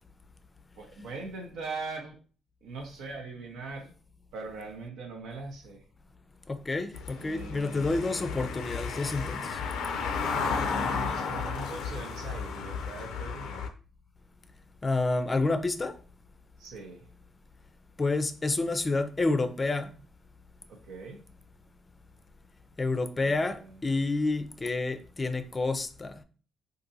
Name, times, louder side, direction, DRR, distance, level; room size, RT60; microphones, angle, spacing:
voice 1, 0.8-2.2 2.6-3.9 4.3-5.8 7.2-8.2 10.2-13.6 16.6-17.1 20.7-21.2 23.2-23.7, right 3 dB, 85° right, 0.6 m, -41 dB
voice 2, 6.5-9.6 14.8-15.9 18.0-19.9 22.8-26.2, left 3 dB, 25° left, 0.4 m, -29 dB
Car passing by / Engine, 6.9-13.7, left 5 dB, 90° left, 0.4 m, -33 dB
3.7 x 2.6 x 2.6 m
cardioid pair, 90°, 0 cm